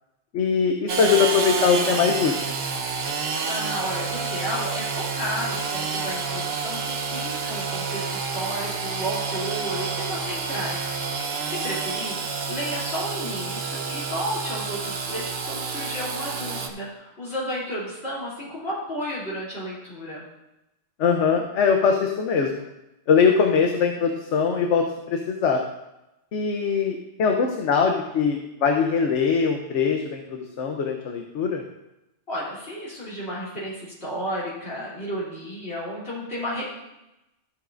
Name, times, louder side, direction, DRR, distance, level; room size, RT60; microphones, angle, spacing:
voice 1, 0.3-2.3 21.0-22.6 23.1-25.6 26.3-31.6, left 6 dB, 90° left, 3 dB, 1.1 m, -22 dB
Engine / Sawing, 0.9-16.7, right 5 dB, 65° right, 1.1 m, -29 dB
voice 2, 3.5-11.2 11.4-12.2 12.5-20.2 32.3-36.7, equal, 65° left, -9 dB, 3.2 m, -32 dB
13.5 x 8.1 x 2.6 m, 0.94 s
omnidirectional pair, 1.2 m